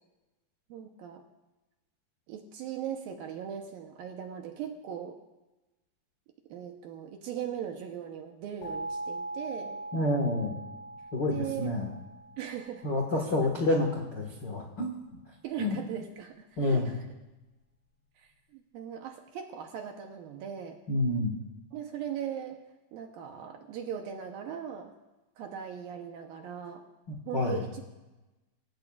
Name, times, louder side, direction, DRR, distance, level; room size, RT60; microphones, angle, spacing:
voice 1, 0.7-1.2 2.3-5.2 6.5-9.8 11.3-11.7 12.4-12.9 15.4-17.0 18.2-20.8 21.7-22.6 22.9-24.9 25.4-26.8 27.3-27.8, right 9 dB, 75° right, 4 dB, 2.3 m, -39 dB
sound 1, 8.6-13.4, right 2 dB, 55° left, 3.1 m, -41 dB
voice 2, 9.9-10.6 11.1-11.9 12.8-15.2 15.6-15.8 16.6-16.9 20.9-21.4 27.1-27.6, left 2 dB, 70° left, 0 dB, 1.0 m, -28 dB
26.0 x 14.5 x 2.4 m, 1.1 s
omnidirectional pair, 4.9 m